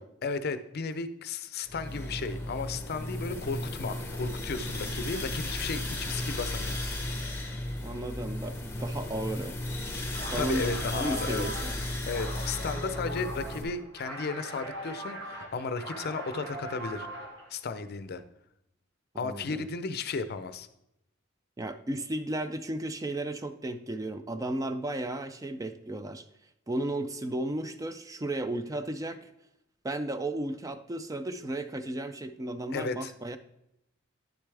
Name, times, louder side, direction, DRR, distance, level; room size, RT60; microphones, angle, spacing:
voice 1, 0.2-6.8 10.3-11.5 12.1-17.1 17.5-18.2 19.2-20.7 32.7-33.1, left 4 dB, 50° left, 12 dB, 0.5 m, -34 dB
sound 1, 1.7-13.6, left 1 dB, 10° left, 1.0 m, -35 dB
voice 2, 7.8-9.5 10.2-11.7 19.2-19.7 21.6-26.2 26.7-29.3 29.8-33.4, right 1 dB, 15° right, 10 dB, 0.3 m, -34 dB
sound 2, 10.1-17.5, right 1 dB, 60° right, 1.8 m, -41 dB
9.7 x 6.7 x 3.3 m, 0.81 s
head